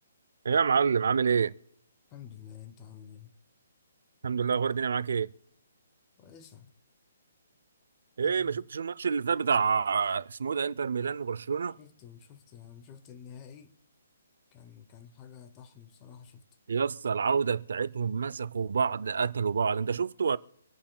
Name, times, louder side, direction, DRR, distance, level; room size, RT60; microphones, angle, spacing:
voice 1, 0.4-1.5 4.2-5.3 8.2-11.8 16.7-20.4, right 6 dB, 70° right, 0.4 m, -27 dB
voice 2, 2.1-3.3 6.2-6.7 8.2-8.6 11.8-13.8 14.5-16.4, left 8 dB, 20° left, 0.7 m, -49 dB
26.0 x 8.7 x 2.2 m
hypercardioid pair, 170°, 0 cm